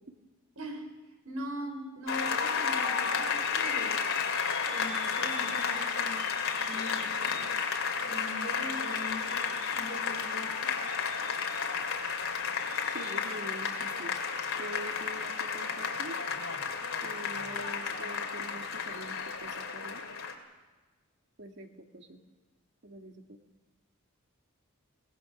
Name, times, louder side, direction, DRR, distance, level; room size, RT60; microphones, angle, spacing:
voice 1, 0.6-1.0 1.2-4.0 4.7-7.5 8.1-10.7, equal, 85° right, 4 dB, 4.3 m, -42 dB
Applause, 2.1-20.3, left 5 dB, 70° left, 2.5 m, -32 dB
voice 2, 12.8-14.1 14.6-16.2 17.0-20.0 21.4-22.2 22.8-23.4, right 1 dB, 55° right, 4 dB, 1.9 m, -45 dB
23.5 x 18.5 x 6.1 m, 1.2 s
head